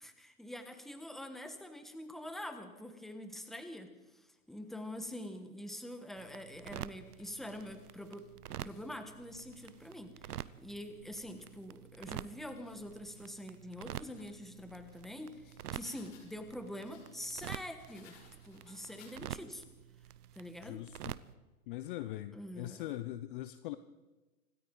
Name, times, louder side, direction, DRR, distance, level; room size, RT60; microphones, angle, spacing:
voice 1, 0.0-8.2 8.6-15.4 15.7-18.1 18.4-19.6 20.3-20.8 22.3-22.8, left 1 dB, ahead, 7 dB, 1.2 m, -45 dB
sound 1, 4.6-5.4 6.1-9.0 9.5-12.9 13.4-16.4 16.8-19.6, left 5 dB, 55° left, 6.0 m, -65 dB
sound 2, 6.2-21.3, right 11 dB, 75° right, 0.8 m, -48 dB
voice 2, 20.6-21.1 21.7-23.8, left 14 dB, 35° left, 12 dB, 0.6 m, -41 dB
25.5 x 13.5 x 3.9 m, 1.2 s
hypercardioid pair, 125°, 46 cm